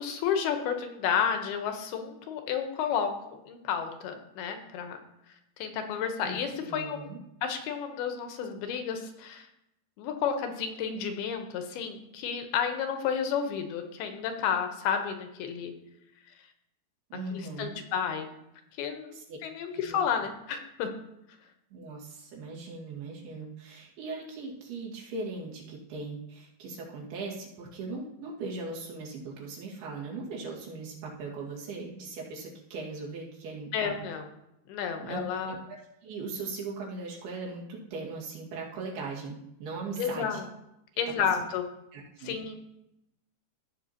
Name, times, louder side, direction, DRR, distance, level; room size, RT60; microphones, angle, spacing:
voice 1, 0.0-3.1 3.5-5.0 5.6-7.0 7.4-9.5 10.0-15.7 17.3-18.3 18.8-20.9 33.7-34.3 34.7-35.6 40.0-40.5 41.0-41.6 42.2-42.6, left 7 dB, 85° left, 6 dB, 2.9 m, -31 dB
voice 2, 6.2-7.2 17.1-17.8 19.1-19.4 19.7-20.0 21.7-34.0 35.0-35.8 36.0-40.4 41.2-41.3 41.9-42.4, right 3 dB, 85° right, -3 dB, 3.9 m, -39 dB
14.0 x 8.0 x 2.9 m, 0.84 s
omnidirectional pair, 4.4 m